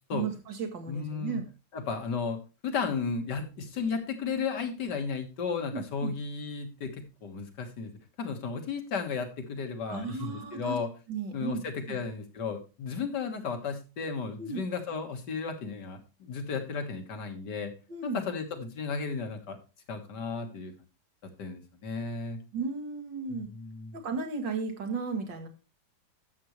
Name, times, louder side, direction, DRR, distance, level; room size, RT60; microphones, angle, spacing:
voice 1, 0.1-1.4 5.7-6.1 9.9-10.8 11.1-11.6 11.9-12.0 14.4-14.6 17.9-18.2 22.5-23.5 23.9-25.5, right 5 dB, 70° right, 5 dB, 2.6 m, -34 dB
voice 2, 0.9-1.4 1.7-7.9 8.2-10.9 11.3-17.7 18.0-19.6 19.9-20.7 21.4-22.4 23.3-24.0, left 5 dB, 60° left, 6 dB, 2.2 m, -34 dB
12.0 x 7.9 x 3.1 m, 0.30 s
omnidirectional pair, 2.1 m